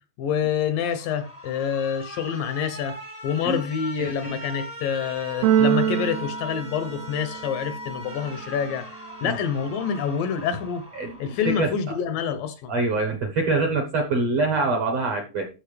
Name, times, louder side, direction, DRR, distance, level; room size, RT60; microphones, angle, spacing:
voice 1, 0.2-3.0 3.2-10.9 11.2-12.7, left 7 dB, 75° left, 2.1 m, -27 dB
Alarm, 0.8-11.8, equal, 15° left, 0.5 m, -40 dB
voice 2, 4.0-4.3 9.2-9.4 11.0-11.1 11.4-11.7 12.7-15.5, right 3 dB, 65° right, 1.6 m, -24 dB
Keyboard (musical), 5.4-7.5, right 10 dB, 90° right, 2.6 m, -24 dB
14.0 x 6.1 x 3.3 m
omnidirectional pair, 4.4 m